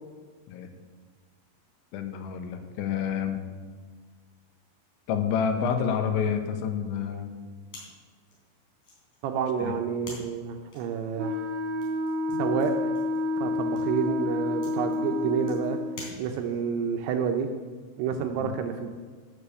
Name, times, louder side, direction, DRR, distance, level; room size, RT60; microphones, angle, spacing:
voice 1, 1.9-3.4 5.1-7.3 9.6-9.8 18.4-18.5, left 7 dB, 85° left, 6 dB, 3.4 m, -28 dB
sound 1, 7.7-16.7, left 2 dB, 45° left, 4.3 m, -49 dB
voice 2, 9.2-11.4 12.3-12.7 13.4-15.8 16.2-17.5 18.0-18.9, right 7 dB, 80° right, 5 dB, 2.5 m, -29 dB
Wind instrument woodwind instrument, 11.2-16.0, left 2 dB, 60° right, 1.4 m, -29 dB
12.5 x 6.8 x 6.9 m, 1.5 s
omnidirectional pair, 5.3 m